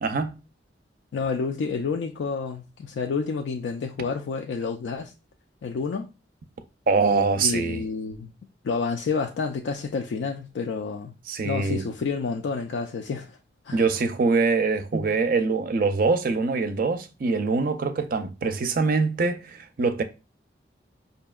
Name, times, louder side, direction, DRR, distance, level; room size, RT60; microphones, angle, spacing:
voice 1, 0.0-0.3 6.9-7.8 11.3-11.9 13.7-20.0, right 4 dB, 50° right, 0.4 m, -24 dB
voice 2, 1.1-5.1 5.6-6.1 7.4-8.3 8.6-11.1 11.4-13.4 13.6-13.9, left 5 dB, 75° left, 0.3 m, -29 dB
4.9 x 2.7 x 2.3 m
head